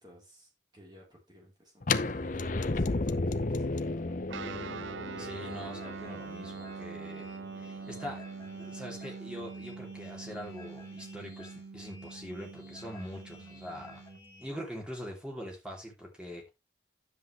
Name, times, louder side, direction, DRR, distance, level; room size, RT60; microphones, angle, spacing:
voice 1, 0.0-4.2, equal, 25° right, 3.9 m, -55 dB
sound 1, 1.8-7.7, left 3 dB, 45° left, 0.7 m, -33 dB
Guitar, 4.3-14.2, right 5 dB, 80° right, 0.4 m, -44 dB
sound 2, 5.0-14.5, left 1 dB, 15° left, 3.5 m, -54 dB
voice 2, 5.2-8.2 8.6-14.0 14.4-16.5, equal, 5° right, 2.9 m, -43 dB
10.5 x 8.0 x 3.3 m
head